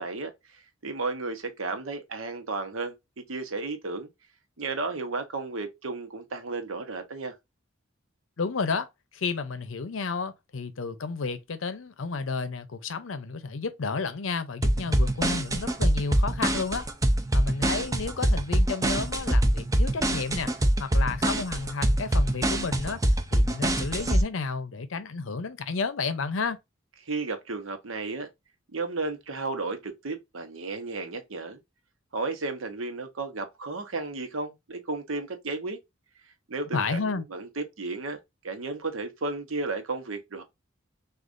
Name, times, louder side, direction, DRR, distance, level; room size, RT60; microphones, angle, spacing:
voice 1, 0.0-4.1 4.6-7.4 27.0-28.3 28.7-31.6 32.1-35.8 36.5-40.4, right 3 dB, 90° right, 0.9 m, -33 dB
voice 2, 8.4-8.9 9.1-16.9 17.3-20.5 20.8-26.6 36.7-37.2, left 4 dB, 70° left, 0.6 m, -31 dB
sound 1, 14.6-24.2, right 1 dB, 15° right, 0.5 m, -24 dB
6.3 x 2.4 x 2.5 m
head